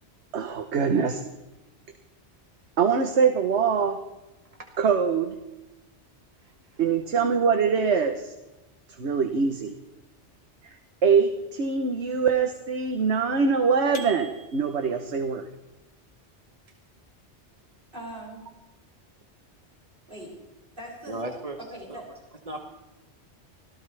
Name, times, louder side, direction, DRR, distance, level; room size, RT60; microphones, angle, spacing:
voice 1, 0.3-1.2 2.8-4.0 4.8-5.3 6.8-8.3 9.0-9.7 10.6-10.8 11.0-15.5, right 5 dB, 70° right, 6 dB, 1.3 m, -23 dB
voice 2, 6.4-6.8 21.1-21.6 21.9-22.0 22.4-22.7, right 2 dB, 35° right, 3 dB, 1.4 m, -36 dB
sound 1, 13.9-15.0, right 2 dB, 45° left, 1.9 m, -43 dB
voice 3, 17.9-18.5 20.1-20.3 20.8-21.2 21.6-22.1, right 1 dB, 50° right, -4 dB, 7.0 m, -40 dB
25.0 x 17.0 x 3.4 m, 1.0 s
omnidirectional pair, 1.2 m